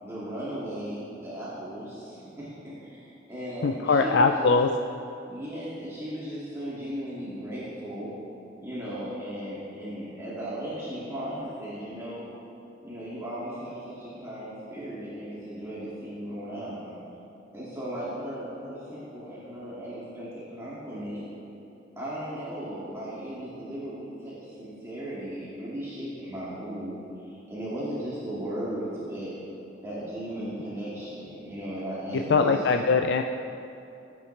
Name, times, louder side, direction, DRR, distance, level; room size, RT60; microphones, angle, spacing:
voice 1, 0.0-4.5 5.3-8.1 8.6-12.3 12.8-16.9 17.5-21.3 22.0-29.3 29.8-32.6, equal, 15° right, -10 dB, 2.1 m, -36 dB
voice 2, 3.6-4.7 32.3-33.2, left 4 dB, 65° left, 5 dB, 0.4 m, -21 dB
16.5 x 8.7 x 3.3 m, 2.8 s
head